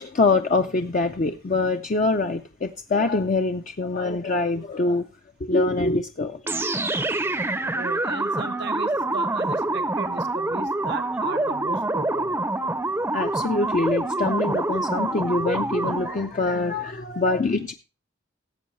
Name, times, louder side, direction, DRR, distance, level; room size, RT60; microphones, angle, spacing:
voice 1, 0.0-5.1 5.4-6.4 13.1-17.7, left 3 dB, 40° left, 0.5 m, -24 dB
sound 1, 6.5-16.3, right 2 dB, 10° right, 0.6 m, -26 dB
voice 2, 7.7-12.4, right 4 dB, 60° right, 0.7 m, -36 dB
17.5 x 7.8 x 3.1 m
head